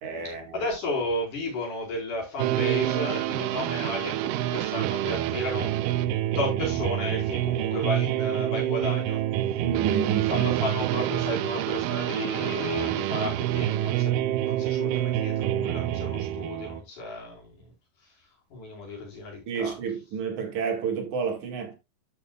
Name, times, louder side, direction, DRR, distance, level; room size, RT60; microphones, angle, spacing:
voice 1, 0.0-0.7 9.6-10.5 19.5-21.7, right 6 dB, 65° right, 3.3 m, -30 dB
voice 2, 0.5-5.7 6.3-9.2 10.3-14.1 14.4-17.7 18.5-19.8, left 2 dB, 65° left, 6.3 m, -33 dB
sound 1, 2.4-16.8, right 13 dB, 85° right, 2.3 m, -27 dB
12.5 x 7.2 x 2.4 m
omnidirectional pair, 3.8 m